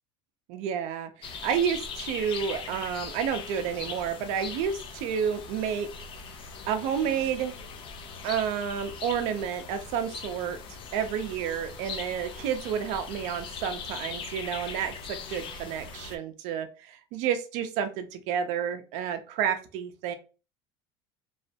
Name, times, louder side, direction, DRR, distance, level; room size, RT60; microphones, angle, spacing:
voice 1, 0.5-5.9 6.7-7.5 8.2-10.6 10.9-20.1, right 8 dB, 65° right, 8 dB, 0.6 m, -30 dB
sound 1, 1.2-16.2, left 5 dB, 45° left, 0.5 m, -40 dB
3.0 x 2.1 x 2.7 m, 0.33 s
supercardioid pair, 115°, 13 cm